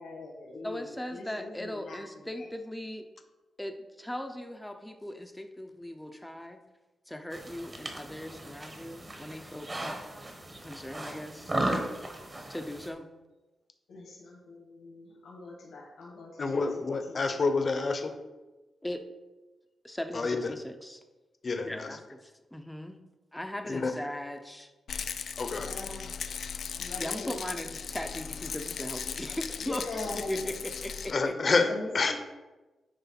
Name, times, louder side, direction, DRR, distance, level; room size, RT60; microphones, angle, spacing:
voice 1, 0.0-2.5 12.0-12.4 13.9-16.6 17.1-17.2 25.5-26.1 26.8-27.4 29.6-30.5 31.5-32.1, left 2 dB, 90° left, -3 dB, 1.7 m, -42 dB
voice 2, 0.6-3.1 3.6-6.6 7.1-10.0 10.6-11.6 12.5-13.1 18.8-19.0 19.8-21.0 21.6-23.0 23.3-24.7 27.0-31.3, left 1 dB, 5° left, 6 dB, 0.6 m, -39 dB
sound 1, 7.3-12.9, right 1 dB, 20° right, 1.1 m, -36 dB
voice 3, 16.4-18.1 20.1-20.5 21.4-22.0 23.6-24.0 25.4-25.7 27.2-27.3 31.1-31.7 31.9-32.1, left 4 dB, 35° left, 7 dB, 0.8 m, -28 dB
Rattle, 24.9-31.1, left 6 dB, 65° left, 0.4 m, -37 dB
9.6 x 3.2 x 5.8 m, 1.1 s
wide cardioid pair, 150°, 0 cm